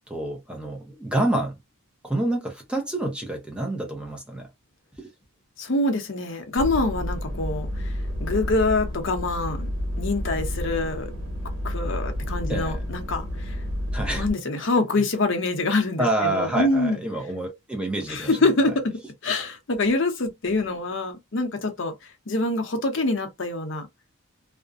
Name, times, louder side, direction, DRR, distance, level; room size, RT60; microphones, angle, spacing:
voice 1, 0.1-1.6 2.0-4.5 12.5-12.8 13.9-14.2 16.0-18.3, right 1 dB, 5° right, 0.6 m, -27 dB
voice 2, 5.6-9.7 10.0-11.1 11.6-13.6 14.2-17.0 18.1-18.9 19.2-21.9 22.3-23.9, left 2 dB, 60° left, 0.7 m, -25 dB
sound 1, 6.6-14.3, equal, 70° right, 1.2 m, -30 dB
2.4 x 2.1 x 2.4 m
head